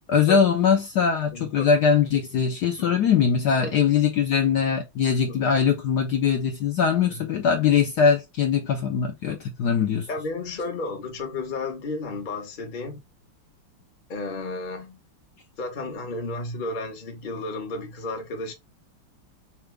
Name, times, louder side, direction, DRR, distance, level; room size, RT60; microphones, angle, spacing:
voice 1, 0.0-10.1, left 7 dB, 65° left, 1.1 m, -21 dB
voice 2, 1.3-1.7 2.8-3.0 3.6-3.7 7.1-7.2 9.3-9.5 10.1-13.0 14.1-15.0 15.6-18.5, left 2 dB, 35° left, 0.8 m, -33 dB
5.7 x 2.4 x 3.2 m
omnidirectional pair, 2.3 m